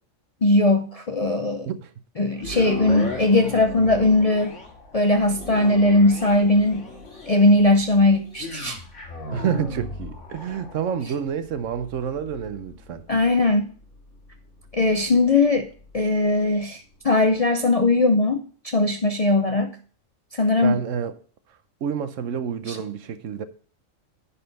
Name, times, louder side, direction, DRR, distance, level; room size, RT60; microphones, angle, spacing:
voice 1, 0.4-1.7 2.2-4.5 4.9-6.8 7.3-8.8 13.1-13.7 14.7-15.7 15.9-19.8 20.3-20.8 22.7-22.8, left 2 dB, 45° left, 0.5 m, -19 dB
sound 1, 2.4-16.6 17.1-17.2, left 2 dB, 60° left, 2.5 m, -37 dB
voice 2, 9.3-13.0 20.6-21.1 21.8-23.4, right 8 dB, 70° right, 1.1 m, -28 dB
10.0 x 4.2 x 6.8 m
omnidirectional pair, 1.4 m